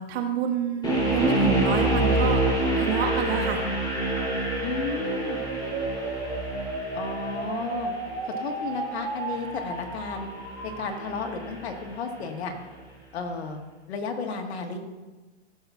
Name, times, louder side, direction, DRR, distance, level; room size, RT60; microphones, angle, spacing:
voice 1, 0.0-2.4 2.8-3.6, right 8 dB, 65° right, 3 dB, 1.5 m, -27 dB
sound 1, 0.8-11.9, right 1 dB, 15° left, 2.7 m, -28 dB
sound 2, 3.9-10.9, right 3 dB, 45° right, 2.1 m, -34 dB
voice 2, 4.6-5.4 6.9-7.9 8.4-10.3 10.6-12.5 13.1-13.6 13.9-14.8, left 5 dB, 75° left, 4 dB, 1.4 m, -33 dB
14.0 x 7.1 x 2.3 m, 1.2 s
hypercardioid pair, 130°, 33 cm